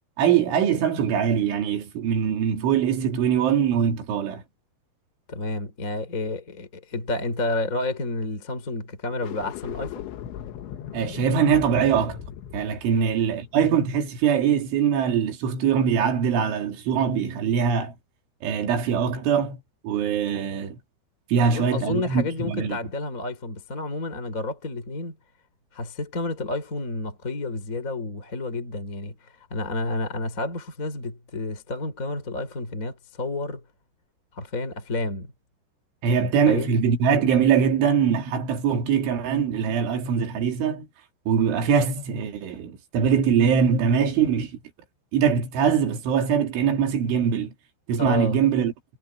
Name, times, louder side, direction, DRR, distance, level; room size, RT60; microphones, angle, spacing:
voice 1, 0.2-4.4 10.9-12.2 12.5-17.9 18.4-20.8 21.3-22.8 36.0-40.9 41.3-44.6 45.1-47.5 47.9-48.7, right 7 dB, 90° right, 5.4 m, -22 dB
voice 2, 5.3-10.0 12.9-13.0 21.5-25.2 25.7-33.6 34.3-35.3 36.1-36.7 48.0-48.4, left 2 dB, 20° left, 3.7 m, -30 dB
sound 1, 9.1-14.4, left 10 dB, 85° left, 4.0 m, -38 dB
omnidirectional pair, 5.4 m